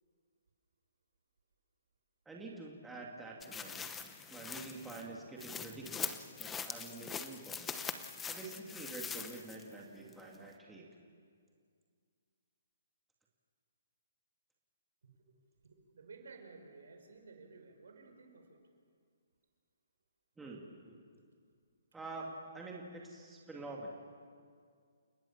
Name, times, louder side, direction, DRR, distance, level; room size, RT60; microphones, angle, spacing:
voice 1, 2.3-7.7 8.3-10.9 20.4-21.0 21.9-23.9, right 3 dB, 5° right, -3 dB, 2.4 m, -47 dB
sound 1, 3.4-9.7 10.1-10.2, left 6 dB, 10° left, 0.9 m, -43 dB
voice 2, 15.0-15.3 15.6-18.6, right 4 dB, 75° right, 4 dB, 5.6 m, -55 dB
29.5 x 18.0 x 7.3 m, 2.1 s
hypercardioid pair, 160°, 0 cm